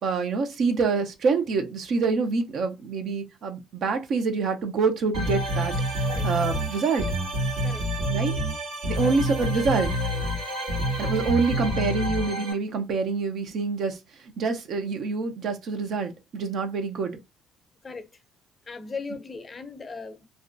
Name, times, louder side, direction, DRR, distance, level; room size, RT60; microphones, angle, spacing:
voice 1, 0.0-5.7 6.2-7.1 8.1-8.3 8.9-9.9 11.0-14.0 14.4-17.1, right 4 dB, 60° right, 0.6 m, -26 dB
sound 1, 5.1-12.5, equal, 75° right, 1.3 m, -27 dB
voice 2, 18.7-20.3, left 4 dB, 35° left, 0.5 m, -37 dB
2.4 x 2.1 x 2.5 m
supercardioid pair, 65°, 0 cm